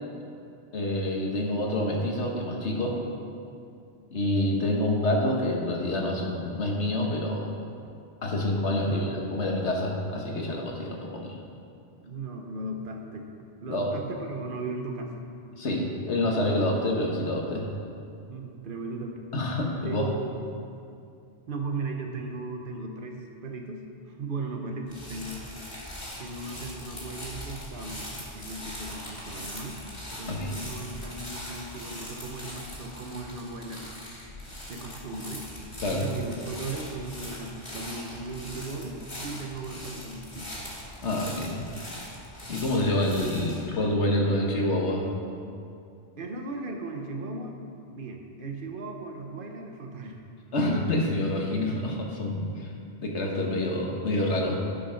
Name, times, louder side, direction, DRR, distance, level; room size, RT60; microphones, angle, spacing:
voice 1, 0.7-3.0 4.1-7.5 8.2-11.4 13.7-13.9 15.6-17.7 19.3-20.1 30.3-30.5 35.8-36.0 41.0-41.6 42.5-45.1 50.5-52.7 53.0-54.6, left 1 dB, 75° left, 0 dB, 1.6 m, -27 dB
voice 2, 12.0-13.3 13.6-15.2 18.3-19.2 19.8-20.3 21.5-25.5 26.2-29.8 30.2-33.9 34.7-35.4 35.9-40.6 46.2-47.6 47.9-50.3, right 3 dB, 50° right, 2 dB, 1.1 m, -37 dB
sound 1, 24.9-43.6, left 1 dB, 35° left, 2.3 m, -41 dB
11.5 x 5.5 x 5.7 m, 2.5 s
omnidirectional pair, 1.2 m